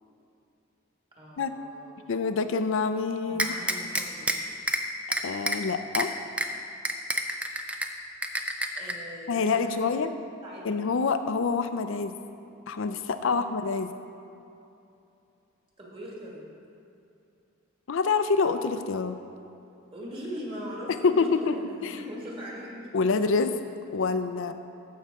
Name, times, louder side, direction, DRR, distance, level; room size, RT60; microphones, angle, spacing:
voice 1, 1.2-2.2 3.3-4.3 8.8-10.0 10.4-10.8 13.2-13.4 15.8-16.5 19.9-22.9, equal, 25° right, -4 dB, 1.7 m, -40 dB
voice 2, 2.1-3.5 5.2-6.1 9.3-10.1 10.6-12.1 12.7-13.9 17.9-19.2 21.0-21.6 21.8-22.0 22.9-23.5 23.9-24.5, left 4 dB, 65° left, 10 dB, 0.5 m, -26 dB
sound 1, 3.4-4.3 4.7-4.8 5.1-5.6 5.9-6.0 6.4-6.5 6.8-7.9 8.2-8.9, right 1 dB, 5° right, 0.4 m, -27 dB
14.0 x 5.6 x 3.6 m, 2.7 s
head